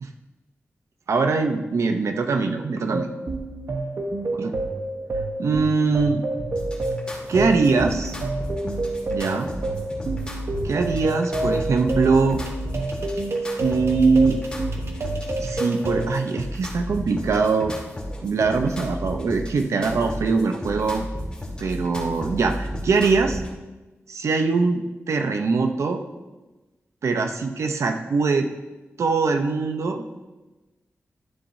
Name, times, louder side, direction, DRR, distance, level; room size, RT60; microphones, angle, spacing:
voice 1, 1.1-3.1 4.4-4.5 5.4-6.2 7.3-8.1 9.1-9.5 10.6-12.4 13.6-14.4 15.4-17.7 18.2-21.1 21.6-23.4 24.1-26.0 27.0-28.5 29.0-30.0, right 4 dB, 85° right, 6 dB, 0.8 m, -22 dB
sound 1, 2.9-16.1, right 2 dB, 65° right, 1.1 m, -29 dB
sound 2, 6.5-23.5, equal, 20° left, 2.1 m, -33 dB
Truck / Idling, 7.1-12.6, right 1 dB, 45° right, 1.5 m, -48 dB
12.5 x 7.0 x 2.7 m, 1.1 s
wide cardioid pair, 130°, 5 cm